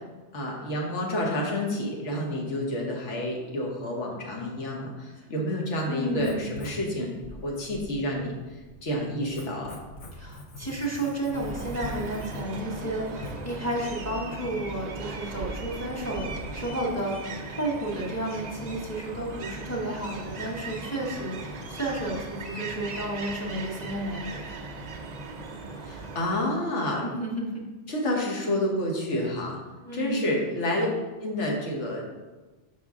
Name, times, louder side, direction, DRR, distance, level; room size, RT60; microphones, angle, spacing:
voice 1, 0.3-7.1 7.4-8.3 8.8-9.8 25.8-27.0 27.9-29.6 29.9-30.9 31.2-32.1, left 1 dB, 80° left, -1 dB, 1.4 m, -29 dB
voice 2, 5.9-6.5 10.1-24.6 27.0-27.6 29.8-30.4, right 1 dB, 15° left, -2 dB, 0.9 m, -32 dB
Writing, 6.1-13.7, left 2 dB, 45° left, 0.5 m, -44 dB
sound 1, 11.3-26.3, right 3 dB, 50° right, 0.5 m, -38 dB
5.4 x 4.8 x 3.6 m, 1.2 s
omnidirectional pair, 1.2 m